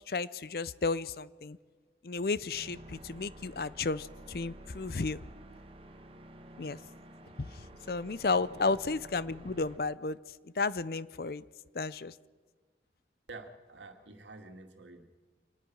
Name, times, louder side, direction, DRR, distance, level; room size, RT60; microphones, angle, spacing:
voice 1, 0.1-1.6 2.0-5.2 6.6-6.8 7.5-7.6 7.9-10.2 10.4-11.4 11.7-12.1, left 4 dB, 55° left, 0.6 m, -33 dB
sound 1, 2.5-9.8, right 1 dB, 30° right, 1.4 m, -51 dB
voice 2, 8.3-8.7 13.3-15.2, right 3 dB, 90° right, 2.3 m, -49 dB
26.0 x 19.5 x 6.3 m
head